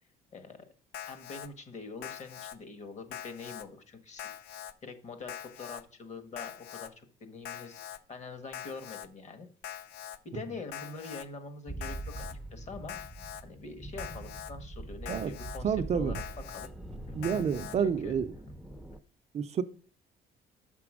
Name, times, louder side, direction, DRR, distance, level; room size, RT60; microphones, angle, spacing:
Alarm, 0.9-1.5 2.0-2.6 3.1-3.6 4.2-4.7 5.3-5.8 6.4-6.9 7.4-8.0 8.5-9.1 9.6-10.2 10.7-11.2 11.8-12.3 12.9-13.4 14.0-14.5 15.1-15.6 16.1-16.7 17.2-17.8, left 10 dB, 75° left, 0.6 m, -43 dB
voice 1, 1.1-9.5 10.2-13.0 13.4-16.7 17.1-17.2 17.8-18.2, left 4 dB, 45° left, 9 dB, 1.4 m, -44 dB
sound 1, 11.7-19.0, right 2 dB, ahead, 0.7 m, -43 dB
voice 2, 15.6-16.2 17.1-18.3 19.3-19.6, right 7 dB, 40° right, 10 dB, 0.6 m, -29 dB
6.9 x 6.0 x 4.9 m, 0.42 s
cardioid pair, 110°, 17 cm